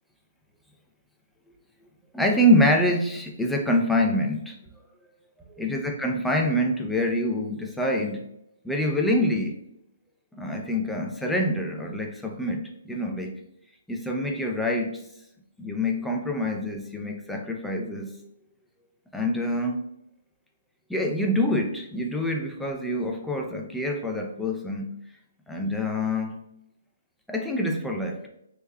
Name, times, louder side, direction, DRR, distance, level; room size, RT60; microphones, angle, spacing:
voice 1, 2.1-4.6 5.5-8.2 8.6-9.6 10.3-13.3 13.9-15.0 15.6-18.3 19.1-19.8 20.9-24.9 25.5-26.3 27.3-28.3, left 1 dB, ahead, 0 dB, 0.5 m, -26 dB
3.5 x 3.1 x 2.2 m, 0.78 s
hypercardioid pair, 150°, 0 cm